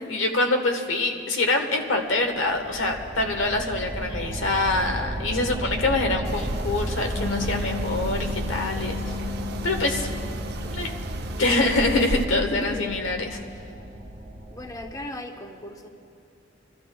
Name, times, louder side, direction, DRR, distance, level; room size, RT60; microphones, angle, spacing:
voice 1, 0.0-9.1 9.6-10.1 10.7-10.9 11.4-13.4, left 2 dB, 85° left, 4 dB, 1.2 m, -25 dB
sound 1, 2.3-15.1, right 1 dB, 35° right, 1.4 m, -34 dB
sound 2, 6.2-12.2, right 1 dB, 55° right, 0.6 m, -33 dB
Bass guitar, 7.2-13.4, left 7 dB, 55° left, 1.5 m, -37 dB
voice 2, 12.5-12.9 14.5-15.9, equal, 20° left, 4 dB, 0.7 m, -37 dB
29.5 x 13.0 x 2.3 m, 2.5 s
head